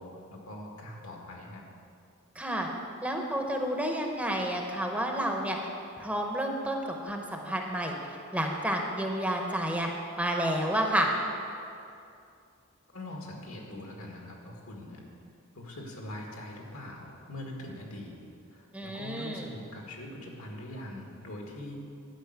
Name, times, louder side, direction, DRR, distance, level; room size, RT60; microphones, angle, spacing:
voice 1, 0.0-1.7 12.9-15.0 15.5-18.2 18.5-21.7, left 1 dB, 75° left, 0 dB, 1.8 m, -42 dB
voice 2, 2.4-2.7 3.0-5.6 6.0-8.0 8.3-9.9 10.2-11.1 18.7-19.5, right 1 dB, 5° right, 1 dB, 0.8 m, -30 dB
11.5 x 5.3 x 7.9 m, 2.5 s
head